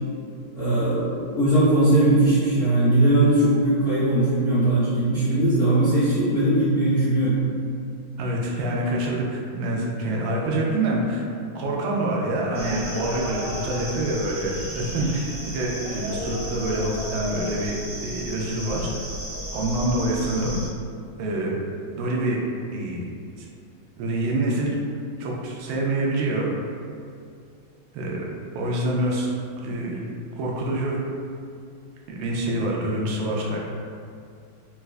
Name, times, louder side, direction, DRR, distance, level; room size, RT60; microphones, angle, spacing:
voice 1, 0.5-7.4, right 1 dB, 70° left, -13 dB, 0.5 m, -20 dB
voice 2, 8.2-11.2 11.5-17.8 18.0-19.0 19.5-20.6 21.2-21.6 21.9-22.4 22.7-23.0 23.4-23.5 24.0-24.8 25.2-26.5 27.9-29.3 29.6-30.1 30.4-31.0 32.1-33.6, right 1 dB, 85° right, -2 dB, 1.4 m, -26 dB
sound 1, 12.5-20.7, equal, 50° right, 1.0 m, -33 dB
4.1 x 2.3 x 2.4 m, 2.4 s
omnidirectional pair, 2.2 m